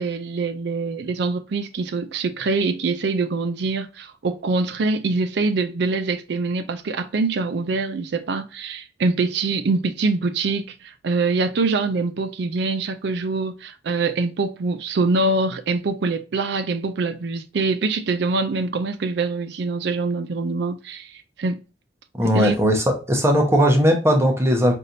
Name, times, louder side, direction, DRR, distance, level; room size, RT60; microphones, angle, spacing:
voice 1, 0.0-21.6 22.3-22.6, right 3 dB, 65° right, 0.4 m, -24 dB
voice 2, 22.2-24.7, equal, 15° right, 1.0 m, -18 dB
4.2 x 3.3 x 2.6 m
head